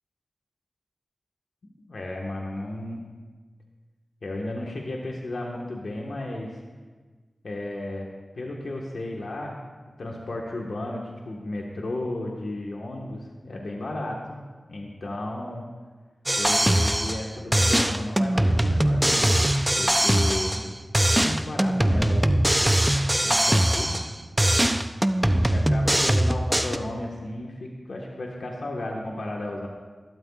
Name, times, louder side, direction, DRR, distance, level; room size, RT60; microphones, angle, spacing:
voice 1, 1.9-3.1 4.2-6.6 7.4-8.1 8.4-9.6 10.0-15.6 16.4-19.3 19.8-20.7 21.1-22.3 23.2-24.0 25.5-29.7, left 1 dB, 80° left, -1 dB, 1.4 m, -33 dB
sound 1, 16.3-17.3 17.5-20.7 20.9-24.1 24.4-26.8, right 1 dB, 10° right, 0.5 m, -21 dB
20.0 x 12.5 x 2.4 m, 1.4 s
wide cardioid pair, 80°, 0 cm